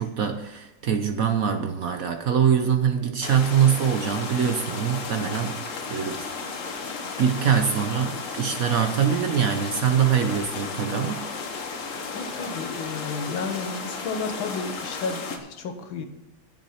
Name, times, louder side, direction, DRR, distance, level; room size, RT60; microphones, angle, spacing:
voice 1, 0.0-5.6 5.9-6.2 7.2-11.2, right 8 dB, 60° right, 6 dB, 1.0 m, -23 dB
sound 1, 3.2-15.4, left 4 dB, 45° left, 1.3 m, -34 dB
voice 2, 12.1-16.1, left 4 dB, 80° left, 6 dB, 2.0 m, -32 dB
10.5 x 7.3 x 5.7 m, 0.97 s
omnidirectional pair, 2.1 m